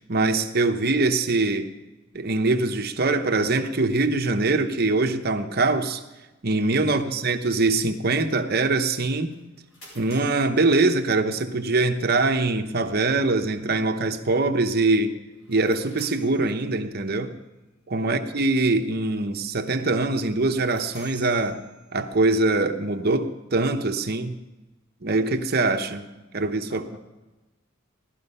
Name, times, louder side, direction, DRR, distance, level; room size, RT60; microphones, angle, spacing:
voice 1, 0.0-1.7 2.1-6.0 6.4-9.3 9.9-15.2 15.5-17.3 17.9-21.6 21.9-24.4 25.0-26.0 26.3-27.0, right 3 dB, 45° right, 6 dB, 0.9 m, -23 dB
voice 2, 6.8-7.2 18.0-18.3 26.7-27.0, equal, 55° left, 0 dB, 2.7 m, -47 dB
sound 1, 9.3-11.6 15.3-17.0 20.4-22.2, equal, 80° left, 6.2 m, -50 dB
16.5 x 12.0 x 5.5 m, 1.1 s
head